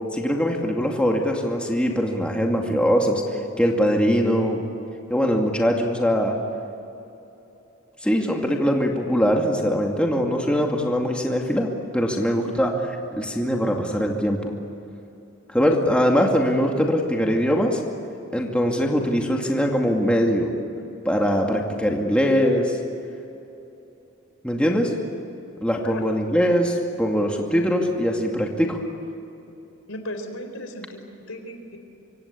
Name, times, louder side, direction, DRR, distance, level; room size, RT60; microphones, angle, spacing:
voice 1, 0.1-3.2 3.6-4.6 5.1-6.4 8.0-14.5 15.5-17.8 18.3-20.5 21.0-22.8 24.4-24.9 25.6-28.8, equal, 5° left, 0 dB, 2.3 m, -22 dB
voice 2, 29.9-31.8, left 1 dB, 80° left, 6 dB, 4.1 m, -36 dB
26.0 x 25.0 x 8.5 m, 3.0 s
head